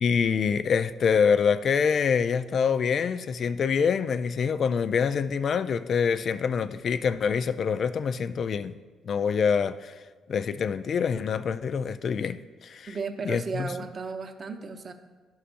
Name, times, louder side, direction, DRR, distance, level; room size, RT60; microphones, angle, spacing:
voice 1, 0.0-8.7 9.0-9.9 10.3-12.9 13.3-13.7, left 6 dB, 55° left, 0.3 m, -25 dB
voice 2, 12.9-14.9, right 4 dB, 45° right, 0.7 m, -34 dB
11.5 x 5.5 x 2.5 m
cardioid pair, 90°, 0 cm